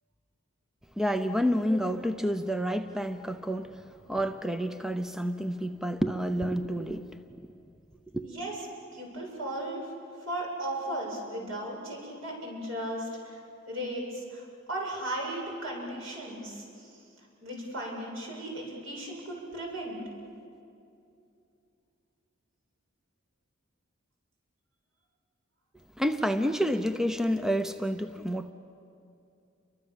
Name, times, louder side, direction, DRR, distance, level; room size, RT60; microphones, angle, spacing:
voice 1, 1.0-7.4 8.1-8.3 26.0-28.5, equal, ahead, 9 dB, 0.6 m, -29 dB
voice 2, 8.9-9.8 10.3-13.4 13.7-14.4 14.7-17.0 17.4-20.0, right 1 dB, 80° right, -1 dB, 7.8 m, -36 dB
30.0 x 24.0 x 7.4 m, 2.6 s
head